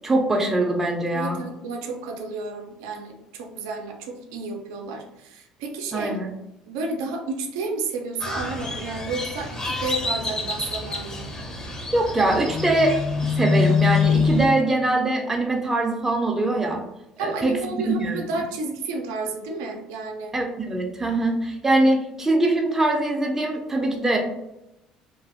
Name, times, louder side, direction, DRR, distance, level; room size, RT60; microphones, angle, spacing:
voice 1, 0.0-1.4 5.9-6.3 11.9-13.0 13.4-16.8 17.2-18.2 20.3-24.2, right 2 dB, 15° right, 1 dB, 0.5 m, -22 dB
voice 2, 1.1-6.2 6.7-11.3 17.2-20.4, right 3 dB, 80° right, 2 dB, 0.4 m, -31 dB
Crow, 8.2-14.5, left 4 dB, 30° left, 0.7 m, -25 dB
2.6 x 2.4 x 2.5 m, 0.89 s
hypercardioid pair, 65°, 2 cm